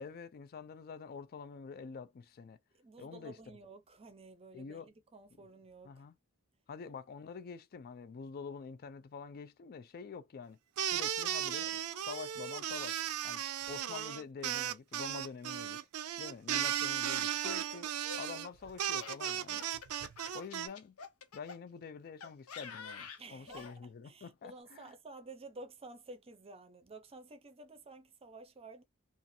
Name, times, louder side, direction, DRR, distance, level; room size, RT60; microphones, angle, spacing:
voice 1, 0.0-2.6 3.0-3.3 4.5-4.9 5.8-6.2 6.7-10.6 10.9-13.0 13.2-15.8 16.2-19.7 20.3-21.0 21.3-24.9, left 5 dB, 45° left, 0.4 m, -47 dB
voice 2, 2.7-6.0 23.2-23.7 24.0-28.8, right 2 dB, 25° right, 0.6 m, -52 dB
sound 1, 10.8-20.7, right 10 dB, 85° right, 0.4 m, -36 dB
Laughter, 17.2-21.6 22.2-23.8, left 5 dB, 90° left, 0.6 m, -49 dB
2.5 x 2.4 x 2.6 m
head